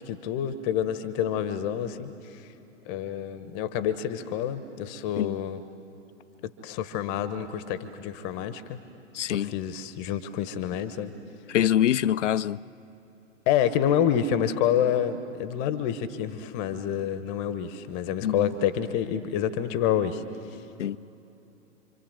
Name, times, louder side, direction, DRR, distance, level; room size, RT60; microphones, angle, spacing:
voice 1, 0.1-2.5 2.9-5.6 6.4-8.8 9.3-11.1 13.5-20.2 20.5-20.6, left 9 dB, 35° left, 1.2 m, -28 dB
voice 2, 9.1-9.5 11.5-12.6 18.2-18.5 20.8-21.0, left 11 dB, 65° left, 0.6 m, -24 dB
27.0 x 26.0 x 7.9 m
figure-of-eight pair, 110°, 38 cm